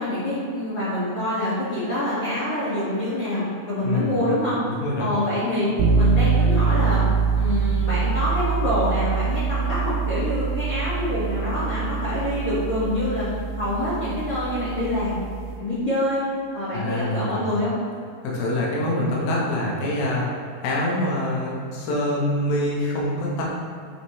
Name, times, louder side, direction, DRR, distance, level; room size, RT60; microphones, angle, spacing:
voice 1, 0.0-3.4 3.7-4.6 5.0-7.0 7.3-13.3 13.6-15.2 15.6-16.2 16.5-17.8, left 1 dB, 40° left, -12 dB, 2.0 m, -26 dB
voice 2, 3.8-4.2 4.7-5.1 16.7-17.4 18.2-20.4 20.6-23.4, left 1 dB, 75° left, -4 dB, 3.1 m, -25 dB
sound 1, 5.8-15.6, right 5 dB, 90° right, 2.6 m, -24 dB
8.6 x 5.2 x 3.2 m, 2.4 s
omnidirectional pair, 4.3 m